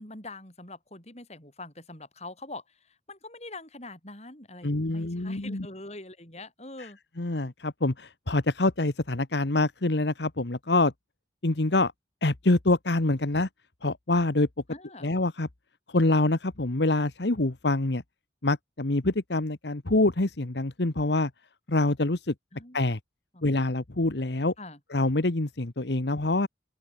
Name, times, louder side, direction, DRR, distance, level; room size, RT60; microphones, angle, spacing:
voice 1, 0.0-2.6 3.1-7.0 14.7-15.1 22.5-22.8 23.3-23.5 24.6-24.8, left 2 dB, 35° left, 7.7 m, -43 dB
voice 2, 4.6-5.7 6.8-6.9 7.2-10.9 11.4-11.9 12.2-13.5 13.8-14.5 15.0-15.5 15.9-18.0 18.4-21.3 21.7-22.3 22.7-23.0 23.4-24.5 24.9-26.5, left 2 dB, 70° left, 1.4 m, -25 dB
open air
head